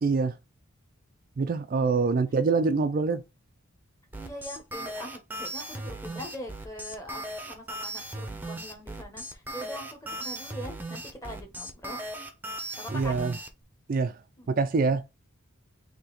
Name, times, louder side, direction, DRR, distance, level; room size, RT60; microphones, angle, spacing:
voice 1, 0.0-0.3 1.4-3.2 12.9-13.3 13.9-14.2 14.5-15.0, right 4 dB, 40° right, 0.3 m, -25 dB
voice 2, 1.7-2.2 4.2-7.2 7.5-12.3 12.8-13.2 14.4-14.6, equal, 15° left, 1.2 m, -42 dB
sound 1, 4.1-13.5, right 1 dB, 10° right, 0.7 m, -37 dB
4.0 x 2.8 x 4.2 m
head